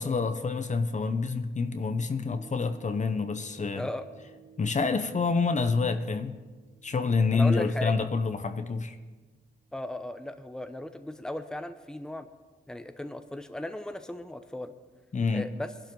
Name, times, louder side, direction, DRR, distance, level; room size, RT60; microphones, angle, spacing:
voice 1, 0.0-3.9 4.6-6.4 6.8-9.0 15.1-15.5, left 4 dB, 45° left, 9 dB, 0.8 m, -27 dB
sound 1, 2.3-10.7 11.2-11.3, right 5 dB, 50° right, 3.1 m, -57 dB
voice 2, 3.7-4.1 7.3-7.9 9.7-12.3 12.7-14.7 15.3-15.7, left 1 dB, 5° left, 8 dB, 0.9 m, -36 dB
21.0 x 11.5 x 3.9 m, 1.3 s
cardioid pair, 80°, 17 cm